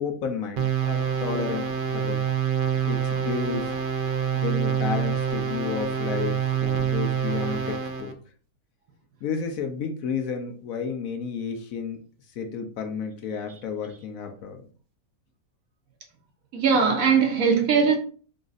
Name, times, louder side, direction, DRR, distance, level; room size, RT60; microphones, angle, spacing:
voice 1, 0.0-2.3 2.9-3.8 4.3-8.2 9.2-12.0 12.3-14.7, left 6 dB, 70° left, 1.0 m, -31 dB
sound 1, 0.6-8.1, right 8 dB, 90° right, 0.4 m, -26 dB
voice 2, 16.5-18.0, right 6 dB, 65° right, 1.2 m, -20 dB
4.0 x 3.9 x 2.5 m
omnidirectional pair, 1.6 m